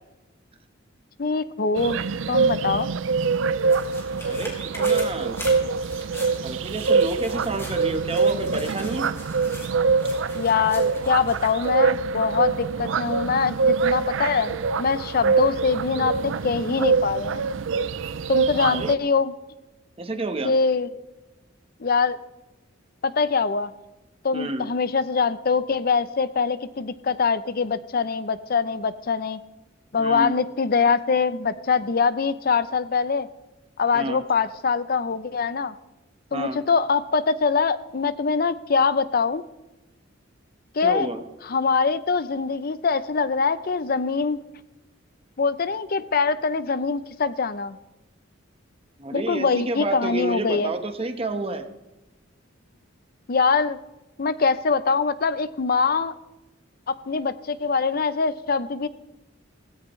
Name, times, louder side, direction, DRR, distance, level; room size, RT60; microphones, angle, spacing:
voice 1, 1.2-2.0 2.3-2.9 10.3-17.4 18.3-19.3 20.4-20.9 21.8-22.2 23.0-23.7 24.2-29.4 29.9-33.3 33.8-35.7 36.3-39.4 40.7-41.1 41.5-44.4 45.4-47.8 49.1-50.7 53.3-53.8 54.2-56.2 56.9-58.9, left 5 dB, 50° left, 14 dB, 0.6 m, -23 dB
sound 1, 1.7-19.0, right 4 dB, 75° right, 0.5 m, -24 dB
sound 2, 3.0-11.7 12.1-12.2, left 1 dB, 15° left, 4.6 m, -42 dB
voice 2, 4.2-5.4 6.4-9.1 18.7-19.0 20.0-20.5 24.3-24.7 30.0-30.3 33.9-34.2 36.3-36.6 40.8-41.2 49.0-51.6, right 2 dB, 30° right, 7 dB, 1.2 m, -30 dB
17.5 x 16.5 x 3.2 m, 1.0 s
head